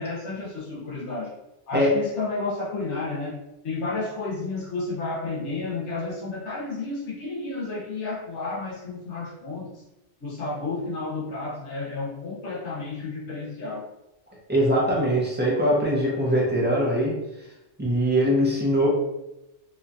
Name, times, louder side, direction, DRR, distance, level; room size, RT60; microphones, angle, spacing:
voice 1, 0.0-1.3 1.7-3.4 3.6-9.7 10.2-13.9, left 3 dB, 80° left, -5 dB, 1.2 m, -31 dB
voice 2, 14.5-17.2 17.8-18.9, equal, 15° right, -5 dB, 0.4 m, -22 dB
2.8 x 2.3 x 2.5 m, 0.90 s
omnidirectional pair, 1.2 m